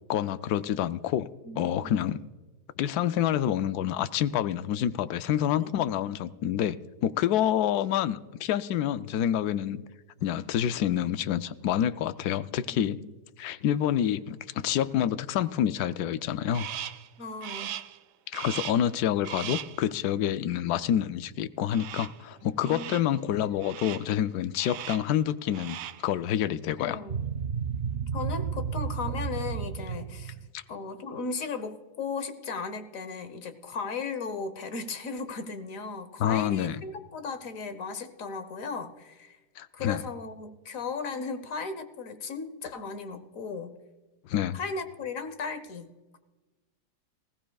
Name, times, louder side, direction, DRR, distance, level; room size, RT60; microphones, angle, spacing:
voice 1, 0.1-1.3 1.6-2.2 2.8-6.8 7.0-9.8 10.2-13.0 13.4-16.7 18.3-27.0 30.5-30.6 36.2-36.8 39.6-40.0 44.2-44.6, left 10 dB, 75° left, 13 dB, 1.1 m, -27 dB
voice 2, 1.4-2.2 5.6-5.7 12.7-13.1 17.2-17.8 22.6-23.4 26.8-27.2 28.1-30.3 30.7-39.4 39.7-43.8 44.5-46.2, left 4 dB, 55° left, 10 dB, 1.4 m, -36 dB
Crow, 16.5-17.1 17.4-18.0 18.3-18.9 19.2-19.8 21.7-22.2 22.6-23.1 23.6-24.1 24.6-25.1 25.5-26.1, right 11 dB, 90° right, 1.2 m, -39 dB
sound 1, 27.1-30.5, right 7 dB, 55° right, 0.7 m, -32 dB
20.0 x 16.5 x 2.3 m, 1.2 s
omnidirectional pair, 1.8 m